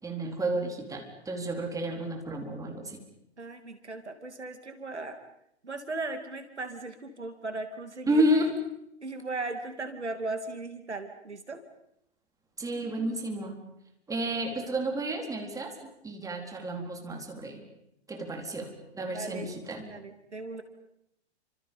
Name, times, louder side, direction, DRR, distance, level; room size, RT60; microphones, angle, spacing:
voice 1, 0.0-3.0 8.1-8.5 12.6-13.5 14.1-15.7 16.0-17.6 18.1-19.9, right 1 dB, 10° right, 3 dB, 4.1 m, -31 dB
voice 2, 3.4-5.2 5.6-8.2 9.0-11.6 19.0-19.6 19.9-20.6, right 3 dB, 85° right, 8 dB, 2.8 m, -37 dB
30.0 x 26.0 x 5.4 m, 0.79 s
figure-of-eight pair, 110°, 33 cm